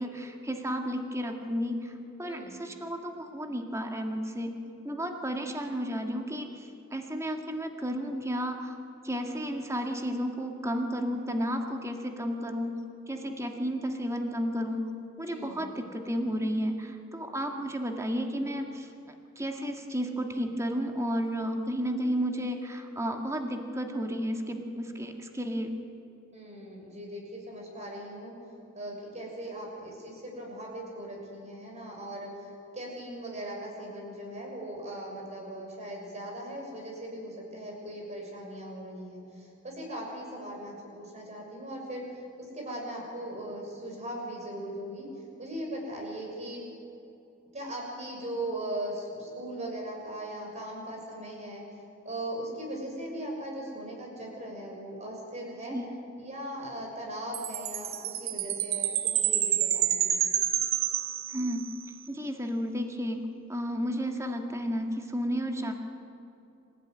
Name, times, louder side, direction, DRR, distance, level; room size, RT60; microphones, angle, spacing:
voice 1, 0.0-1.9 2.2-4.5 4.8-8.7 9.0-12.8 13.1-14.9 15.2-25.7 55.7-55.9 61.3-61.7 62.1-63.2 63.5-65.7, equal, 15° right, 4 dB, 1.9 m, -32 dB
voice 2, 2.2-2.6 15.3-15.7 26.3-28.3 28.7-46.6 47.5-51.6 52.0-55.8 56.2-60.3, right 1 dB, 35° right, -1 dB, 6.6 m, -39 dB
Chime, 57.3-61.8, right 11 dB, 75° right, 1.1 m, -28 dB
26.5 x 15.5 x 9.7 m, 2.8 s
head